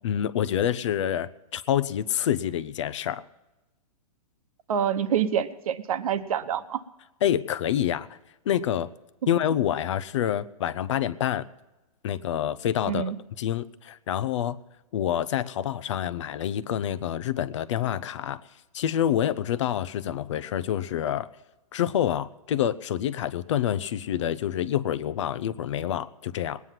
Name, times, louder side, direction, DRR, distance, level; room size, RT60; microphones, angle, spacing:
voice 1, 0.0-3.2 7.2-8.1 8.5-8.9 9.3-11.4 12.0-13.1 13.4-14.6 14.9-18.4 18.7-21.3 21.7-26.6, left 10 dB, 50° left, 16 dB, 0.6 m, -27 dB
voice 2, 4.7-6.8 12.9-13.2, right 8 dB, 60° right, 11 dB, 1.1 m, -26 dB
20.0 x 9.5 x 5.8 m, 1.0 s
hypercardioid pair, 165°, 20 cm